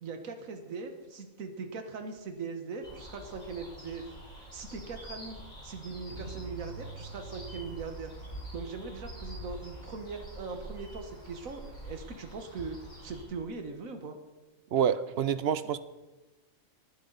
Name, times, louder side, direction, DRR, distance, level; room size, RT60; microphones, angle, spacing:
voice 1, 0.0-8.1 8.5-14.2, right 4 dB, 75° right, 6 dB, 1.7 m, -40 dB
sound 1, 2.8-13.2, equal, 30° left, 5.9 m, -46 dB
sound 2, 6.1-12.1, right 4 dB, 35° right, 4.0 m, -48 dB
voice 2, 14.7-15.8, right 8 dB, 60° right, 14 dB, 0.8 m, -27 dB
19.5 x 10.5 x 4.0 m, 1.1 s
omnidirectional pair, 1.4 m